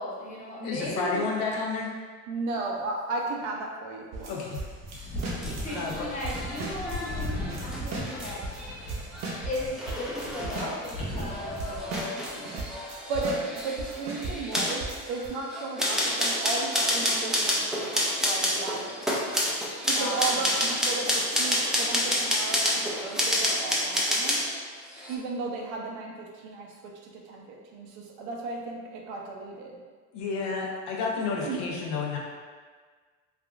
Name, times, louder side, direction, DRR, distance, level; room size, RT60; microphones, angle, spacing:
voice 1, 0.0-1.3 5.6-8.4 9.4-12.8 19.9-20.5, left 1 dB, 20° left, -6 dB, 0.8 m, -36 dB
voice 2, 0.6-1.9 4.3-4.6 4.9-5.2 5.7-6.1 30.1-32.2, left 4 dB, 80° left, -1 dB, 0.7 m, -31 dB
voice 3, 2.3-4.4 13.1-19.2 19.9-24.4 25.1-29.8 31.4-31.6, right 3 dB, 85° right, 0 dB, 0.6 m, -35 dB
sound 1, 4.1-8.6 8.9-11.3 11.6-15.3, right 3 dB, 50° right, 0.7 m, -37 dB
sound 2, 4.8-12.0, left 1 dB, 55° left, 1.1 m, -38 dB
sound 3, 5.2-24.6 24.9-25.2, equal, ahead, 0.3 m, -29 dB
3.4 x 2.3 x 2.4 m, 1.5 s
supercardioid pair, 105°, 35 cm